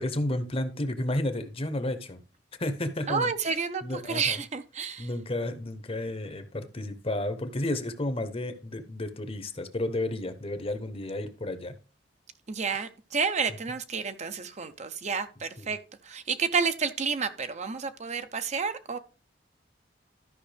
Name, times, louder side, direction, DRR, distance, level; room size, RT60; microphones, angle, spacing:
voice 1, 0.0-2.2 2.6-3.3 3.8-4.4 5.0-11.8 15.6-15.7, left 1 dB, 30° left, 0.9 m, -32 dB
voice 2, 3.1-5.1 12.5-15.8 16.0-19.0, right 5 dB, 40° right, 0.6 m, -30 dB
13.0 x 5.5 x 3.4 m
head